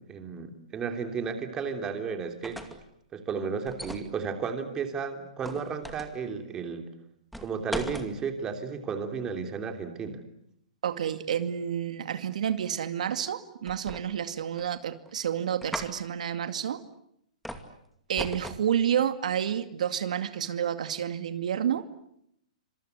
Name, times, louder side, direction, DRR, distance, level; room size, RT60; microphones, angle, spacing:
voice 1, 0.0-2.6 3.1-6.9 7.4-10.2, right 5 dB, 15° right, 6 dB, 3.1 m, -33 dB
sound 1, 2.2-2.9 3.7-4.1 5.4-6.2 7.3-8.1 13.7-14.3 14.6-15.1 15.6-15.9 17.5-17.7 18.2-18.7, equal, ahead, 2.4 m, -38 dB
voice 2, 10.8-16.8 18.1-21.8, right 9 dB, 70° right, 10 dB, 2.3 m, -29 dB
27.5 x 26.5 x 8.2 m, 0.74 s
hypercardioid pair, 160°, 4 cm